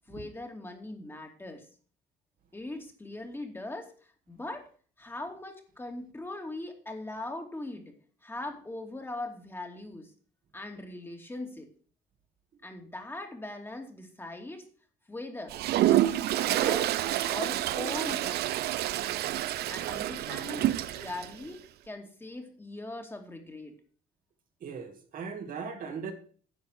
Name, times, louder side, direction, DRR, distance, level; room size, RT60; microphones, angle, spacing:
voice 1, 0.1-1.7 2.5-4.7 5.0-7.9 8.2-10.1 10.5-11.7 12.6-14.6 15.1-15.6 15.8-17.0 17.3-18.6 19.7-23.7, left 2 dB, 15° left, 3 dB, 2.5 m, -40 dB
Toilet flush, 15.5-21.3, right 14 dB, 75° right, 0.7 m, -28 dB
voice 2, 24.6-26.1, right 5 dB, 55° right, 4 dB, 2.5 m, -38 dB
11.0 x 6.7 x 6.5 m, 0.43 s
cardioid pair, 110°, 17 cm